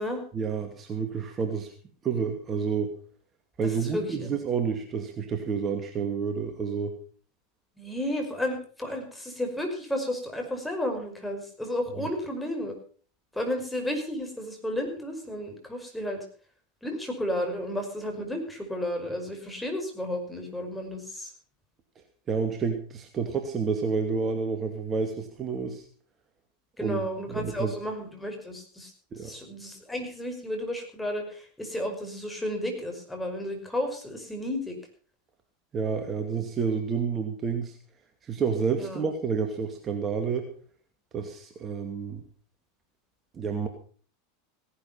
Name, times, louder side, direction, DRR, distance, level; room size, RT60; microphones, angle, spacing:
voice 1, 0.3-1.7 2.0-2.9 3.6-6.9 12.0-12.1 22.3-25.8 26.8-27.7 29.1-29.3 35.7-37.8 38.2-40.5 41.1-42.2 43.3-43.7, right 5 dB, 30° right, 5 dB, 2.4 m, -29 dB
voice 2, 3.6-4.3 7.8-12.7 13.3-16.2 16.8-21.3 26.8-28.9 29.2-34.8 38.7-39.0, left 1 dB, 5° left, 3 dB, 5.4 m, -32 dB
17.0 x 11.5 x 5.7 m, 0.43 s
hypercardioid pair, 95°, 0 cm